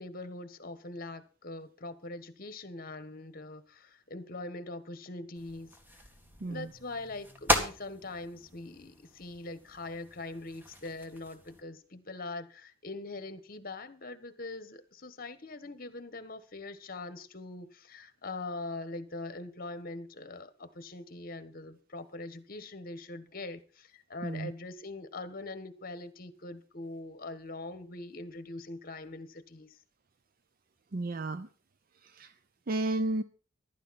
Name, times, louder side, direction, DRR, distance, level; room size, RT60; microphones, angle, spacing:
voice 1, 0.0-6.1 6.4-29.8, left 2 dB, 50° left, 1.3 m, -42 dB
sound 1, 5.3-11.6, equal, 10° right, 1.9 m, -37 dB
voice 2, 6.4-6.7 24.2-24.5 30.9-31.5 32.0-32.3 32.7-33.2, right 2 dB, 50° right, 0.6 m, -32 dB
14.5 x 12.0 x 4.2 m
head